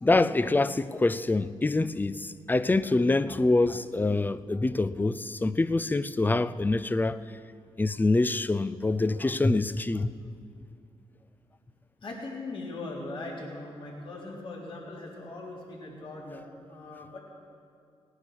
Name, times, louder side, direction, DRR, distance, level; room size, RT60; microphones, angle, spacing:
voice 1, 0.0-7.2 7.8-10.1, left 2 dB, 15° left, 0.5 m, -25 dB
voice 2, 12.0-17.2, left 2 dB, 55° left, 3.4 m, -40 dB
17.5 x 9.6 x 6.2 m
cardioid pair, 65°, 11 cm